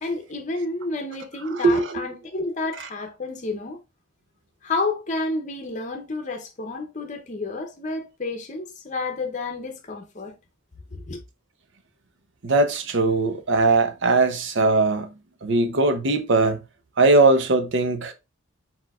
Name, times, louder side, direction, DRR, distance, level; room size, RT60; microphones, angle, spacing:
voice 1, 0.0-3.8 4.6-10.4 10.9-11.2, left 3 dB, 35° left, 0.7 m, -30 dB
voice 2, 1.5-2.0 12.4-15.1 15.4-16.6 17.0-18.1, right 3 dB, 60° right, 0.7 m, -20 dB
4.4 x 4.3 x 2.4 m
head